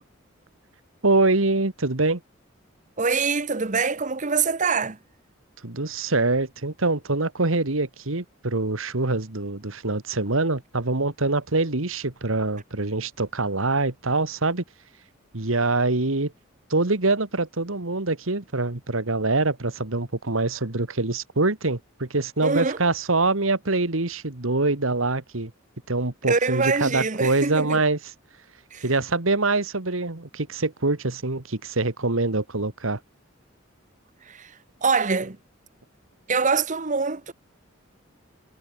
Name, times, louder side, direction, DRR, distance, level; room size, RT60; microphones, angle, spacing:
voice 1, 1.0-2.2 5.6-14.6 15.3-16.3 16.7-25.5 25.9-28.1 28.8-33.0, right 3 dB, 80° right, 2.0 m, -24 dB
voice 2, 3.0-5.0 22.4-22.8 26.3-27.8 28.7-28.9 34.2-34.5 34.8-35.4 36.3-37.3, right 4 dB, 40° right, 1.1 m, -24 dB
head